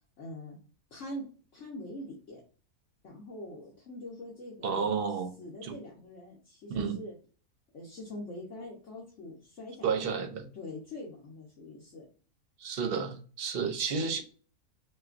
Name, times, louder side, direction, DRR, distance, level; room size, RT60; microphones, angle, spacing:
voice 1, 0.2-0.6 0.9-1.2 1.5-2.4 3.0-4.8 5.4-7.1 7.7-10.2 10.5-12.1, left 1 dB, 55° left, 1.3 m, -43 dB
voice 2, 4.6-5.3 5.6-5.8 6.7-7.0 9.8-10.5 12.6-14.2, right 5 dB, 50° right, 0.8 m, -31 dB
6.0 x 2.4 x 2.5 m
omnidirectional pair, 1.6 m